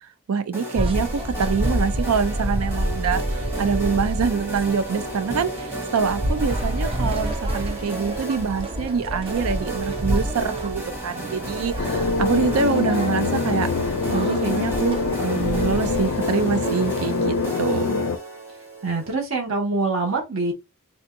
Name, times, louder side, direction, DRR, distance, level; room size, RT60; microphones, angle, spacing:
voice 1, 0.3-13.7 14.1-18.0, right 5 dB, 85° right, 0.4 m, -25 dB
sound 1, 0.5-19.1, right 2 dB, 10° right, 1.0 m, -33 dB
sound 2, 0.7-17.5, right 1 dB, 25° right, 0.4 m, -29 dB
sound 3, 11.8-18.2, left 4 dB, 80° left, 0.4 m, -25 dB
voice 2, 18.8-20.5, right 3 dB, 70° right, 1.5 m, -24 dB
3.4 x 2.7 x 2.5 m
head